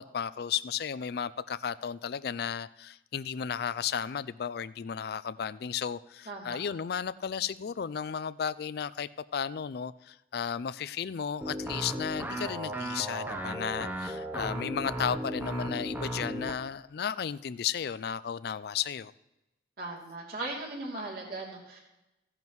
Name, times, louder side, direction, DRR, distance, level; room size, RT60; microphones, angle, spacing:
voice 1, 0.0-19.1, left 7 dB, 55° left, 0.3 m, -34 dB
voice 2, 6.3-6.6 19.8-21.8, right 2 dB, 50° right, 2.9 m, -38 dB
sound 1, 11.4-16.6, right 1 dB, 10° right, 0.7 m, -35 dB
16.0 x 10.5 x 3.1 m
head